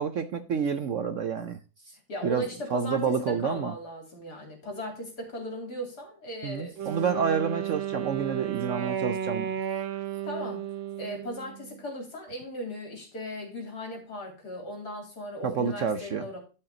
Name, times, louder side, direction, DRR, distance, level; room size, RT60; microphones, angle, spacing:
voice 1, 0.0-1.6 2.2-2.4 2.7-3.7 6.4-9.5 15.4-16.3, right 6 dB, 65° right, 0.8 m, -28 dB
voice 2, 2.1-6.8 10.2-10.7 11.0-16.4, equal, 55° left, 4.0 m, -37 dB
Wind instrument woodwind instrument, 6.8-11.8, right 10 dB, 90° right, 1.7 m, -33 dB
12.0 x 5.8 x 3.8 m
omnidirectional pair, 2.0 m